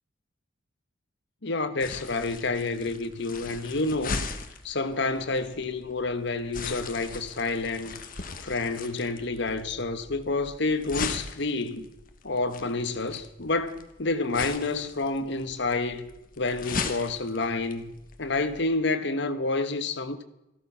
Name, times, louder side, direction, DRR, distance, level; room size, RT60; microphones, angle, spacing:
voice 1, 1.4-4.2 4.6-8.0 8.4-11.9 12.2-16.1 16.4-17.9 18.2-20.2, left 3 dB, 60° left, 1.3 m, -29 dB
sound 1, 1.8-18.6, left 4 dB, 45° left, 1.3 m, -39 dB
15.0 x 13.0 x 5.8 m
head